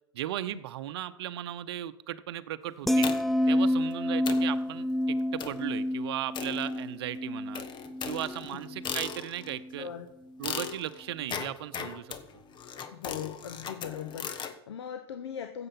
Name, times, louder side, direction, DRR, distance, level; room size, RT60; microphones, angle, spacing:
voice 1, 0.1-3.1 3.5-7.6 8.0-9.9 10.4-12.4, right 13 dB, 65° right, 13 dB, 0.8 m, -36 dB
sound 1, 2.9-9.1 9.5-9.8, left 1 dB, ahead, 0.4 m, -29 dB
sound 2, 3.0-3.5 3.9-4.0 4.3-4.6 5.4-5.7 6.3-7.1 7.5-9.6 10.4-14.6, left 7 dB, 35° left, 1.2 m, -38 dB
voice 2, 12.9-15.7, left 8 dB, 75° left, 8 dB, 1.0 m, -40 dB
15.5 x 7.8 x 5.5 m, 0.84 s
hypercardioid pair, 95°, 14 cm